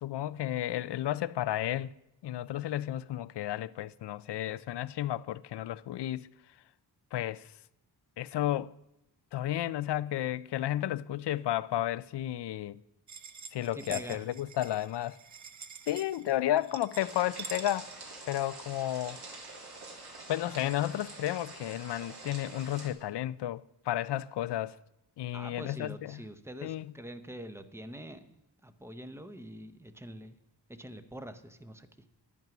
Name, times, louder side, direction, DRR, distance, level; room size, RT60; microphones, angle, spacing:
voice 1, 0.0-1.9 2.2-6.3 7.1-7.5 8.2-8.7 9.3-12.8 13.5-15.2 15.9-17.9 18.3-19.2 20.3-24.8 25.2-26.2 26.6-26.9, left 13 dB, 80° left, 0.5 m, -32 dB
sound 1, 13.1-18.6, right 6 dB, 45° right, 0.7 m, -46 dB
voice 2, 13.7-14.3 25.3-28.3 28.6-30.4 30.7-31.9, right 1 dB, 5° right, 0.7 m, -45 dB
sound 2, 17.0-22.9, right 3 dB, 65° right, 2.7 m, -46 dB
11.0 x 10.5 x 6.0 m
wide cardioid pair, 140°, 40 cm